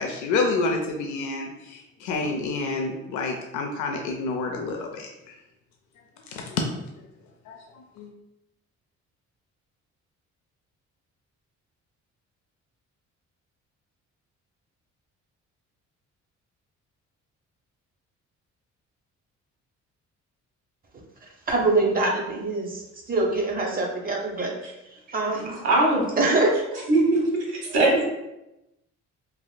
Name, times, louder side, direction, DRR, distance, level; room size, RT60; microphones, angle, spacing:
voice 1, 0.0-5.4 6.2-6.6 7.5-8.1, left 3 dB, 80° left, 1 dB, 0.5 m, -29 dB
voice 2, 21.2-24.5 24.9-25.7 26.2-26.8, right 2 dB, 30° right, 0 dB, 0.6 m, -25 dB
voice 3, 25.6-26.0 26.9-27.2 27.7-28.0, right 2 dB, 60° right, -1 dB, 1.1 m, -19 dB
3.4 x 2.4 x 2.2 m, 0.94 s
cardioid pair, 90°, 30 cm